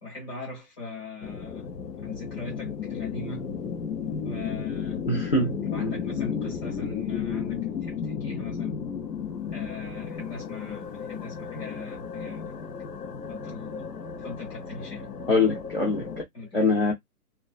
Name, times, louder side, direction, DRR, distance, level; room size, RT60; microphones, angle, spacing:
voice 1, 0.0-1.7 2.0-3.5 4.2-5.0 5.7-8.8 9.5-12.6 13.3-13.9 14.2-15.1 16.3-16.6, left 3 dB, 15° left, 1.0 m, -40 dB
sound 1, 1.2-16.2, left 6 dB, 80° left, 0.9 m, -34 dB
voice 2, 5.1-5.5 15.3-16.1 16.5-16.9, left 3 dB, 40° left, 0.6 m, -23 dB
2.4 x 2.2 x 2.3 m
hypercardioid pair, 180°, 47 cm